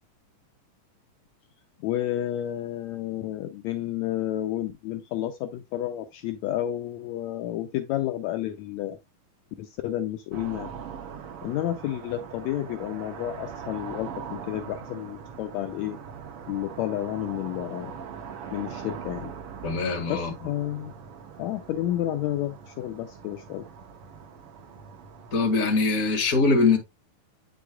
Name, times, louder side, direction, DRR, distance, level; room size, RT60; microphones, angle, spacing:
voice 1, 1.8-9.0 9.6-10.8 11.4-16.0 16.5-18.0 18.5-19.3 20.1-20.9 21.4-23.7, left 13 dB, 85° left, 1.6 m, -31 dB
sound 1, 10.3-25.8, right 7 dB, 65° right, 1.4 m, -41 dB
voice 2, 19.6-20.3 25.3-26.8, left 3 dB, 35° left, 1.6 m, -22 dB
8.3 x 6.5 x 2.3 m
omnidirectional pair, 3.8 m